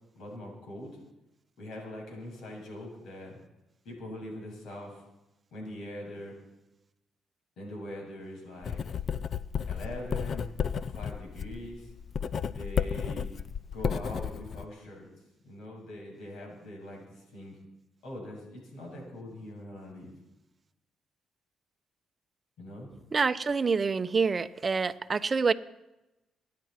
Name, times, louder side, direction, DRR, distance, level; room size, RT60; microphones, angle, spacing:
voice 1, 0.1-1.0 1.6-3.4 3.8-5.0 5.5-6.4 7.6-8.8 9.7-10.5 10.8-11.9 12.5-13.3 13.7-15.1 15.4-17.6 18.0-20.1 22.6-22.9, left 1 dB, 80° left, -1 dB, 7.9 m, -42 dB
Writing, 8.6-14.6, left 7 dB, 50° left, 0.6 m, -33 dB
voice 2, 23.1-25.5, right 5 dB, 35° right, 11 dB, 0.8 m, -27 dB
26.0 x 10.5 x 4.5 m, 0.94 s
cardioid pair, 90°, 0 cm